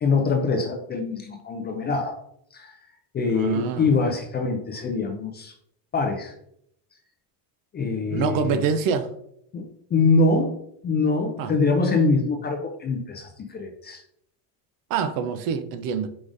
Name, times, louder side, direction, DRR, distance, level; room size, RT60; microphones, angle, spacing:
voice 1, 0.0-2.1 2.5-2.7 3.1-5.5 5.9-6.3 7.7-8.6 9.5-10.5 10.8-14.0, left 3 dB, 25° left, 3 dB, 0.4 m, -24 dB
voice 2, 3.3-3.9 8.1-9.1 11.4-11.5 14.9-16.1, right 6 dB, 50° right, 9 dB, 0.5 m, -25 dB
4.9 x 3.7 x 2.5 m, 0.72 s
cardioid pair, 135°, 46 cm